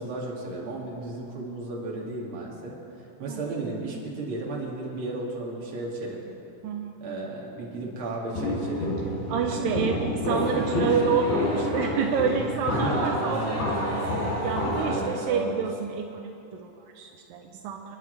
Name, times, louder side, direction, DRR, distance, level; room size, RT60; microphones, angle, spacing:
voice 1, 0.0-6.2 7.0-9.0 9.5-9.7 10.3-11.2 12.6-13.6 14.7-15.6, right 2 dB, 40° right, -4 dB, 2.3 m, -33 dB
Walk footsteps, 8.3-15.0, left 1 dB, 80° left, 6.1 m, -29 dB
voice 2, 9.3-13.7 14.4-18.0, right 6 dB, 85° right, 3 dB, 2.0 m, -28 dB
sound 1, 10.2-15.4, right 1 dB, 65° right, 4.5 m, -38 dB
29.5 x 10.0 x 3.3 m, 2.8 s
omnidirectional pair, 4.9 m